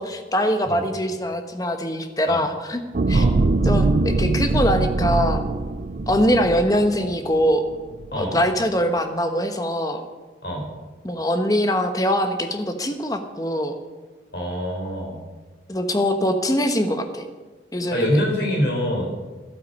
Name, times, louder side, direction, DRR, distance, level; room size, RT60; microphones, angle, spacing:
voice 1, 0.0-2.8 3.1-3.2 3.6-5.4 6.1-7.6 8.2-10.0 11.0-13.7 15.7-17.2 17.7-18.0, equal, 20° left, 7 dB, 1.1 m, -22 dB
sound 1, 2.9-7.5 7.9-8.1, right 2 dB, 50° right, 0.5 m, -22 dB
voice 2, 14.3-15.2 17.9-19.1, equal, 65° left, 0 dB, 4.0 m, -24 dB
12.5 x 12.0 x 5.4 m, 1.3 s
head